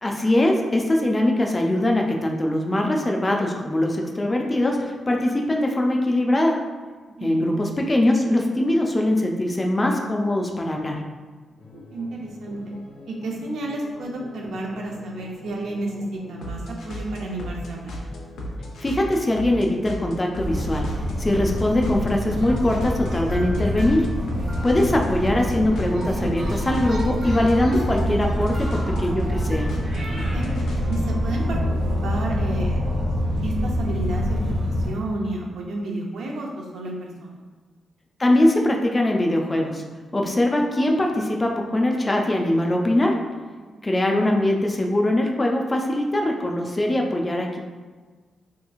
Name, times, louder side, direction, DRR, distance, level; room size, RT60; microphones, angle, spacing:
voice 1, 0.0-6.6 7.2-11.0 18.8-20.9 21.2-24.1 24.6-29.7 38.2-39.8 40.1-43.2 43.8-47.6, left 1 dB, 20° left, 1 dB, 0.3 m, -22 dB
voice 2, 7.1-7.6 11.7-12.6 13.1-17.9 30.2-30.5 30.9-31.6 32.0-32.8 33.4-37.4, right 2 dB, 75° right, -1 dB, 0.6 m, -31 dB
sound 1, 11.6-31.2, left 1 dB, 90° left, 0.5 m, -36 dB
sound 2, 20.4-34.9, equal, 50° right, 0.9 m, -26 dB
sound 3, 23.3-25.2 27.0-30.1, left 1 dB, 20° right, 0.7 m, -44 dB
3.4 x 2.9 x 2.3 m, 1.4 s
wide cardioid pair, 150°, 0 cm